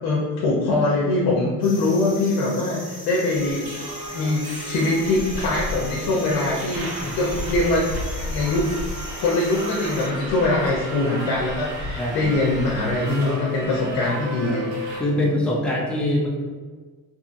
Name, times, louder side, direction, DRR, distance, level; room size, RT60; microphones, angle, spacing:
voice 1, 0.0-3.7 4.1-6.8 7.1-7.9 8.2-8.7 9.2-14.7, left 2 dB, 70° left, -3 dB, 0.7 m, -22 dB
sound 1, 1.6-10.1, equal, 20° left, 0.8 m, -40 dB
Subway metro underground, 3.3-15.0, equal, 70° right, 1.0 m, -33 dB
voice 2, 12.0-12.3 15.0-16.3, left 1 dB, 5° left, -4 dB, 0.4 m, -23 dB
2.7 x 2.6 x 2.5 m, 1.4 s
cardioid pair, 145°, 37 cm